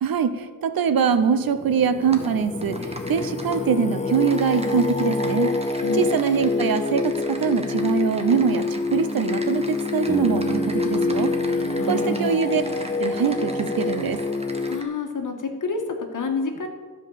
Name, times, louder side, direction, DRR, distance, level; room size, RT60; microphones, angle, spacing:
voice 1, 0.0-5.5 5.9-11.3 11.9-12.6 13.0-14.2, right 6 dB, 75° right, 12 dB, 0.8 m, -23 dB
Singing, 1.0-14.8, left 4 dB, 20° left, 0.4 m, -27 dB
Typing, 2.1-2.3 2.6-3.6 4.1-14.8, right 2 dB, 15° right, 1.3 m, -40 dB
Bass guitar, 10.1-14.2, right 3 dB, ahead, 1.7 m, -33 dB
voice 2, 11.8-12.4 14.7-16.7, left 3 dB, 60° left, 4 dB, 1.6 m, -28 dB
13.0 x 5.3 x 7.4 m, 1.4 s
wide cardioid pair, 95°, 35 cm